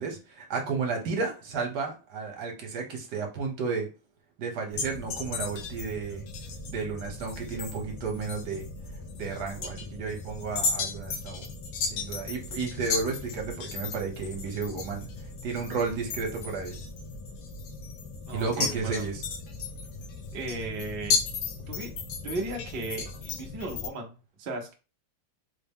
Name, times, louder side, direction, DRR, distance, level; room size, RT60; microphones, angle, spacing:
voice 1, 0.0-3.9 4.4-6.2 6.7-8.7 9.2-11.5 11.8-15.1 15.4-16.8 18.3-19.2, right 4 dB, 60° right, 2 dB, 1.4 m, -32 dB
sound 1, 4.7-23.9, left 4 dB, 75° left, 1.4 m, -35 dB
voice 2, 18.3-19.0 20.3-21.3 21.7-21.9 22.2-24.7, right 2 dB, 85° right, 2 dB, 0.5 m, -36 dB
4.2 x 2.1 x 3.5 m, 0.32 s
omnidirectional pair, 2.2 m